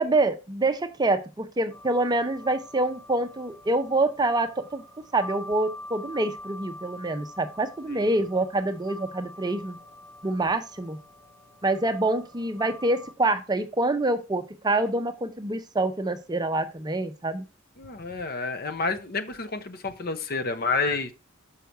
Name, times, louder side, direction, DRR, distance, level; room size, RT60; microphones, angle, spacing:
voice 1, 0.0-4.8 5.1-9.8 10.2-11.0 11.6-17.4, right 2 dB, 20° right, 0.6 m, -26 dB
sound 1, 1.7-13.1, left 1 dB, 20° left, 3.0 m, -45 dB
voice 2, 17.8-21.1, left 4 dB, 50° left, 0.9 m, -29 dB
6.8 x 5.6 x 4.6 m
head